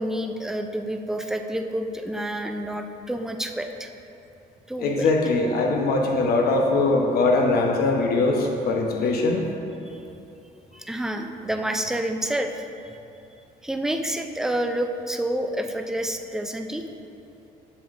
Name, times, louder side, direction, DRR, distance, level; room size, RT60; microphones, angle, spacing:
voice 1, 0.0-3.9 4.7-5.1 10.7-13.0 13.6-16.9, right 1 dB, 5° right, 5 dB, 0.4 m, -29 dB
voice 2, 4.8-9.4, left 3 dB, 65° left, 1 dB, 0.9 m, -21 dB
7.1 x 6.8 x 2.5 m, 2.9 s
cardioid pair, 110°, 17 cm